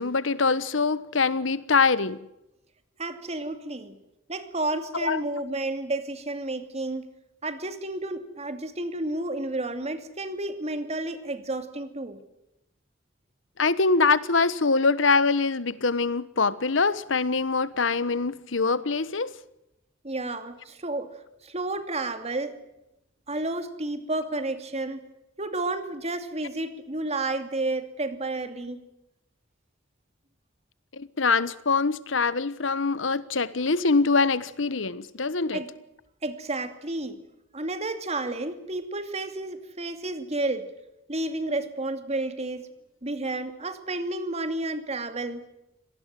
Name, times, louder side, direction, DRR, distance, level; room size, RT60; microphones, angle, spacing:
voice 1, 0.0-2.2 5.0-5.2 13.6-19.3 30.9-35.6, left 4 dB, 75° left, 1.2 m, -24 dB
voice 2, 3.0-4.0 4.3-7.1 7.4-12.2 20.0-22.6 23.3-25.0 25.4-28.8 35.5-35.7 36.2-37.2 37.5-40.7 41.1-42.7 43.0-45.4, right 2 dB, 35° right, 2.6 m, -31 dB
26.0 x 19.0 x 7.7 m
head